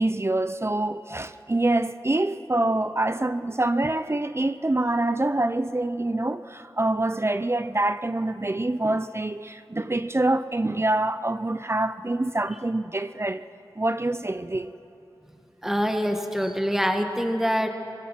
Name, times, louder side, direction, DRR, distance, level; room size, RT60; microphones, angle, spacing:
voice 1, 0.0-13.4 13.8-14.7, right 2 dB, 30° right, 0.6 m, -25 dB
voice 2, 15.6-17.7, equal, 5° right, 1.9 m, -25 dB
23.5 x 22.0 x 5.9 m
wide cardioid pair, 45°, 9 cm